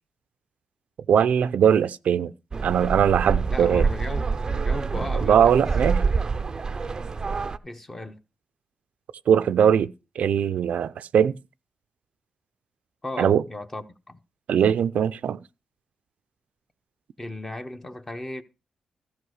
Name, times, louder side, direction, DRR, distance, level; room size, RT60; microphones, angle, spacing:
voice 1, 1.1-2.3 2.6-3.8 5.2-6.0 9.3-11.3 13.2-13.4 14.5-15.4, right 8 dB, 75° right, 0.5 m, -20 dB
sound 1, 2.5-7.6, right 4 dB, 30° right, 0.5 m, -26 dB
voice 2, 3.5-5.7 7.6-8.2 13.0-14.2 17.2-18.4, left 1 dB, 15° left, 1.0 m, -36 dB
14.5 x 5.2 x 6.4 m
wide cardioid pair, 155°, 2 cm